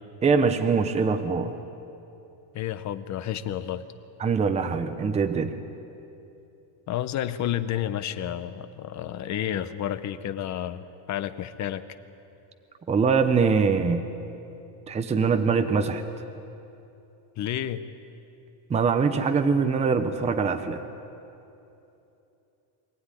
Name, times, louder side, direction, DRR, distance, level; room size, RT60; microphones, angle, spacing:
voice 1, 0.2-1.5 4.2-5.5 12.9-14.0 14.9-16.0 18.7-20.8, right 5 dB, 15° right, 8 dB, 0.7 m, -23 dB
voice 2, 2.5-3.8 6.9-11.8 17.4-17.8, left 11 dB, 35° left, 12 dB, 0.8 m, -30 dB
24.5 x 15.5 x 9.8 m, 2.9 s
cardioid pair, 165°, 50 cm